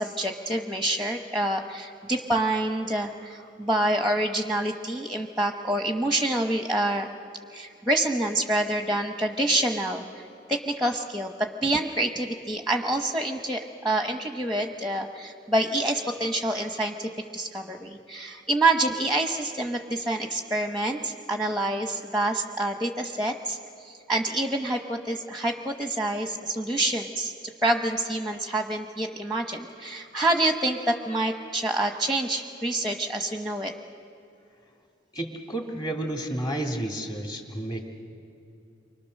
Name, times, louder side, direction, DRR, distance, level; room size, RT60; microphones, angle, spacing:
voice 1, 0.0-7.1 7.5-27.3 27.6-33.7, right 1 dB, ahead, 3 dB, 1.0 m, -27 dB
voice 2, 35.1-37.8, right 1 dB, 25° left, 1 dB, 2.6 m, -31 dB
30.0 x 25.0 x 6.5 m, 2.7 s
head